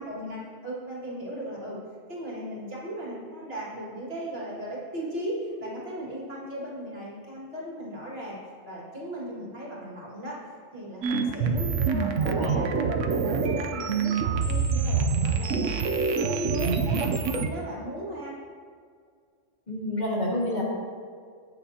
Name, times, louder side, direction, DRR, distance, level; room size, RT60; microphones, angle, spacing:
voice 1, 0.0-1.8 2.1-8.4 8.7-10.4 10.7-12.7 13.0-18.4, right 1 dB, 50° right, -5 dB, 2.4 m, -37 dB
sound 1, 11.0-17.5, right 5 dB, 75° right, 1.0 m, -26 dB
voice 2, 12.2-12.6 19.7-20.6, left 1 dB, 35° left, -5 dB, 1.9 m, -29 dB
17.0 x 6.3 x 2.8 m, 2.1 s
omnidirectional pair, 1.3 m